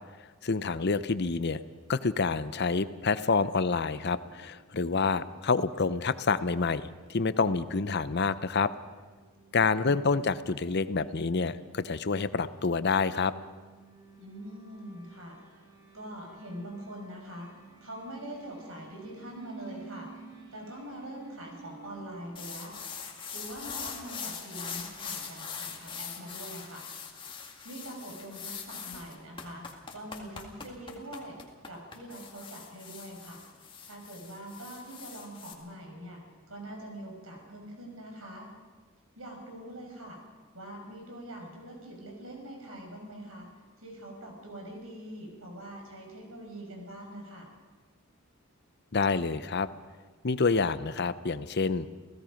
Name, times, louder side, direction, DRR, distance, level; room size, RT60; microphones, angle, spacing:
voice 1, 0.4-1.6 1.9-8.7 9.5-13.3 48.9-49.7 50.2-51.9, left 4 dB, 55° left, 14 dB, 0.7 m, -28 dB
sound 1, 7.6-22.0, right 4 dB, 20° right, 5.4 m, -53 dB
voice 2, 9.6-10.3 14.2-15.6 15.9-17.5 17.8-20.1 20.5-22.7 23.3-26.8 27.6-29.7 29.9-31.4 31.6-33.4 33.8-36.2 36.5-38.5 39.2-40.2 40.5-43.5 43.8-47.5, right 1 dB, 85° right, 1 dB, 6.0 m, -43 dB
sound 2, 22.4-35.5, left 6 dB, 25° left, 2.1 m, -42 dB
29.5 x 17.0 x 5.2 m, 1.4 s
head